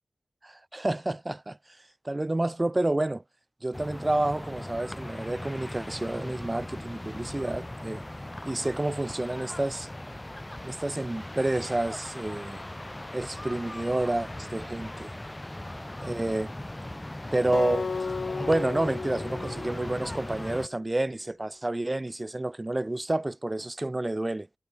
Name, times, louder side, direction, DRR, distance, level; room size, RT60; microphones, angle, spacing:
voice 1, 0.4-1.8 2.0-3.2 3.6-8.0 8.4-9.9 10.6-12.6 13.1-15.1 16.0-16.5 17.3-17.9 18.4-24.5, right 2 dB, 30° right, 0.4 m, -29 dB
sound 1, 3.7-20.7, left 1 dB, 20° left, 3.2 m, -39 dB
Acoustic guitar, 17.5-20.8, left 4 dB, 80° left, 1.4 m, -34 dB
wide cardioid pair, 55°, 0 cm